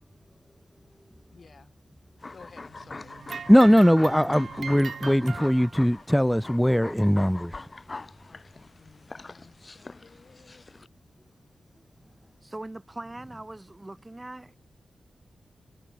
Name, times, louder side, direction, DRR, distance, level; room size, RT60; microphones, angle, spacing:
voice 1, 1.3-1.7 2.3-3.1 8.3-10.7, left 5 dB, 55° left, 7.8 m, -54 dB
sound 1, 2.2-10.9, left 3 dB, 35° left, 0.9 m, -43 dB
sound 2, 2.5-6.1, right 7 dB, 90° right, 2.8 m, -50 dB
sound 3, 3.2-6.0 7.0-7.1 7.9-8.0 8.9-9.0, right 6 dB, 75° right, 0.8 m, -40 dB
voice 2, 3.5-7.7, equal, ahead, 0.4 m, -20 dB
voice 3, 12.4-14.6, right 2 dB, 20° right, 5.5 m, -41 dB
cardioid pair, 70°, 0 cm